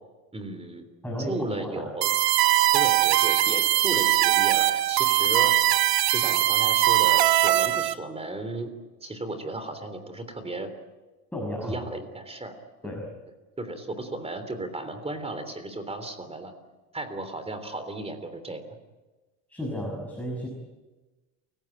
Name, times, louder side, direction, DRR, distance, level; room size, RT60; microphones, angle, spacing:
voice 1, 0.3-0.9 1.2-2.2 2.7-5.5 6.1-8.7 9.0-10.7 11.6-12.5 12.8-12.9 13.6-16.5 16.9-18.6, right 2 dB, 15° right, 9 dB, 3.4 m, -35 dB
voice 2, 1.0-1.9 11.3-11.8 12.8-13.1 19.5-20.5, equal, 5° left, 0 dB, 6.0 m, -33 dB
sound 1, 2.0-7.9, right 14 dB, 60° right, 1.3 m, -21 dB
29.0 x 16.5 x 9.0 m, 1.2 s
cardioid pair, 120°, 43 cm